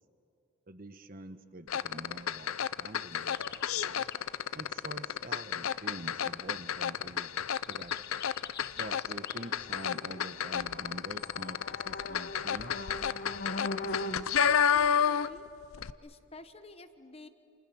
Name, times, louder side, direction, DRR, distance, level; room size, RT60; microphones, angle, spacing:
voice 1, 0.7-2.5 2.8-3.6 3.9-4.1 4.5-7.3 7.7-8.1 8.7-12.9, right 1 dB, 40° right, 10 dB, 1.2 m, -46 dB
sound 1, 1.7-15.5 15.7-15.9, left 8 dB, 80° left, 0.6 m, -31 dB
sound 2, 3.3-4.2 7.4-14.3, left 2 dB, 50° left, 1.1 m, -41 dB
voice 2, 14.7-15.5 16.0-17.3, left 2 dB, 30° left, 10 dB, 1.1 m, -49 dB
30.0 x 29.0 x 6.3 m, 2.7 s
head